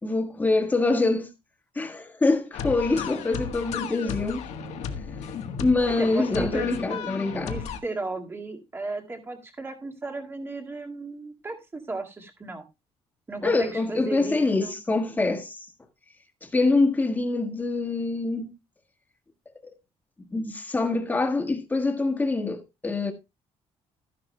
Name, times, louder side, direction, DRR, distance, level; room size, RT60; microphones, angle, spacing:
voice 1, 0.0-1.3 1.7-4.5 5.6-7.6 13.4-15.7 16.4-18.5 20.3-23.1, left 3 dB, 15° left, 1.6 m, -25 dB
sound 1, 2.5-7.8, left 7 dB, 75° left, 1.3 m, -34 dB
voice 2, 5.7-12.7 13.3-14.8, right 3 dB, 20° right, 1.9 m, -35 dB
13.5 x 11.0 x 2.2 m
cardioid pair, 145°, 11 cm